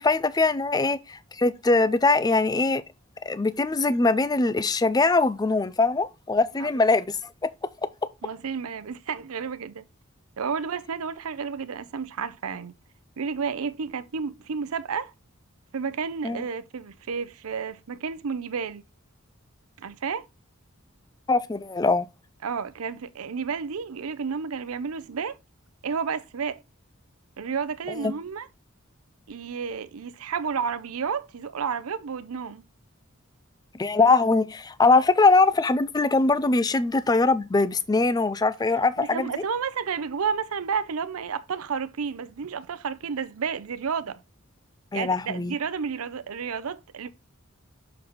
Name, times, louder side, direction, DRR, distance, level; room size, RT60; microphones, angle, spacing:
voice 1, 0.0-2.8 3.2-7.2 7.4-7.5 16.2-16.4 21.3-22.1 27.9-28.1 33.7-39.3 44.9-45.5, left 3 dB, 20° left, 0.4 m, -22 dB
voice 2, 8.2-9.9 10.4-12.7 13.2-15.1 15.7-18.8 19.8-20.3 22.4-25.4 25.8-26.6 27.4-28.5 29.3-32.6 39.1-44.2 44.9-47.1, right 6 dB, 85° right, 0.6 m, -31 dB
6.7 x 4.0 x 4.1 m
head